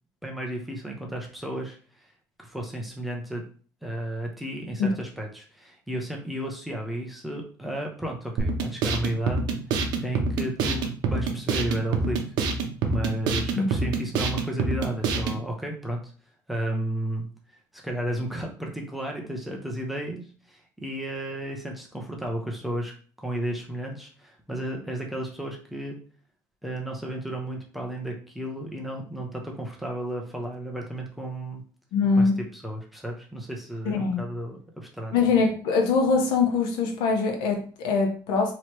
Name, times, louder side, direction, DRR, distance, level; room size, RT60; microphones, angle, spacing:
voice 1, 0.2-2.1 2.4-3.5 3.8-9.4 10.0-12.2 12.9-16.1 16.5-17.3 17.7-22.9 23.2-26.0 26.6-31.6 32.2-35.1, right 1 dB, ahead, -1 dB, 0.6 m, -33 dB
sound 1, 8.4-15.4, right 4 dB, 65° right, 0.7 m, -27 dB
voice 2, 31.9-32.4 33.8-34.2 35.1-38.5, left 4 dB, 90° left, 3 dB, 1.0 m, -23 dB
3.0 x 3.0 x 4.5 m, 0.42 s
cardioid pair, 175°, 8 cm